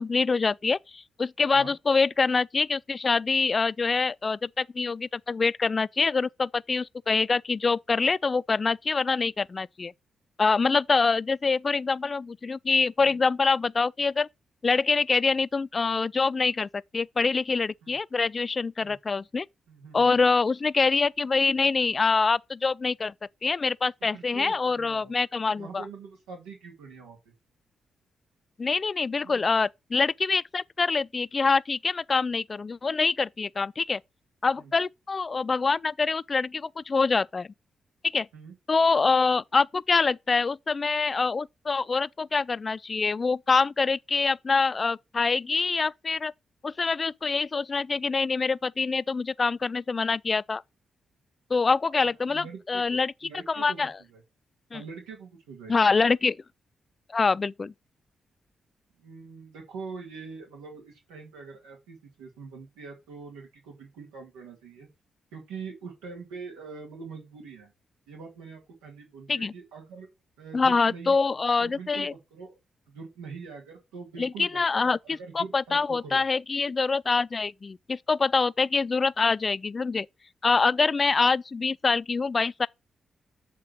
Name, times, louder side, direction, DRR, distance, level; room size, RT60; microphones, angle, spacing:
voice 1, 0.0-9.9 10.4-14.3 14.6-19.5 19.9-23.1 23.4-25.8 28.6-34.0 34.4-37.5 38.1-38.3 38.7-46.3 46.6-50.6 51.5-53.1 53.5-53.9 54.7-54.8 55.7-56.4 57.1-57.7 69.3-69.5 70.5-72.1 74.2-80.1 80.4-82.7, left 4 dB, 40° left, 0.3 m, -25 dB
voice 2, 19.7-20.2 24.1-25.1 25.5-27.2 29.2-29.4 34.6-34.7 38.3-38.5 52.2-53.8 54.1-54.2 54.7-55.7 59.0-64.9 65.3-67.7 68.1-70.1 70.4-71.3 71.6-72.6 72.9-74.6 74.8-76.2, right 5 dB, 90° right, 2.2 m, -43 dB
7.5 x 3.8 x 6.1 m
hypercardioid pair, 45°, 0 cm